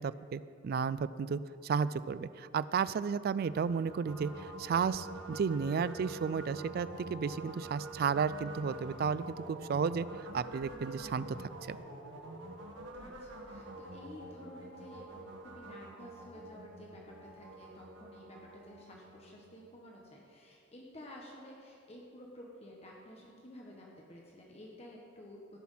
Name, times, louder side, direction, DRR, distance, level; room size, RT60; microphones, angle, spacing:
voice 1, 0.0-10.1 10.3-11.8, right 6 dB, 55° right, 16 dB, 0.3 m, -33 dB
sound 1, 3.4-19.6, right 1 dB, 90° right, 1.2 m, -47 dB
voice 2, 13.0-17.0 17.3-25.6, left 1 dB, 35° left, -2 dB, 1.2 m, -52 dB
17.5 x 6.0 x 5.6 m, 2.7 s
head